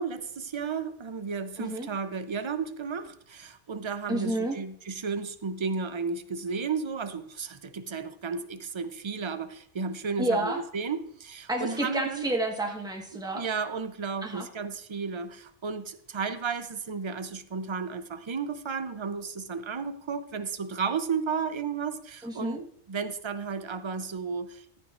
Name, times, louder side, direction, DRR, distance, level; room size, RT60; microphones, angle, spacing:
voice 1, 0.0-12.2 13.3-24.8, right 5 dB, 40° right, 0.4 m, -33 dB
voice 2, 1.6-1.9 4.1-4.5 10.2-10.6 11.5-13.4 14.2-14.5 22.2-22.6, right 1 dB, 5° right, 1.2 m, -30 dB
14.5 x 10.0 x 2.4 m
omnidirectional pair, 1.1 m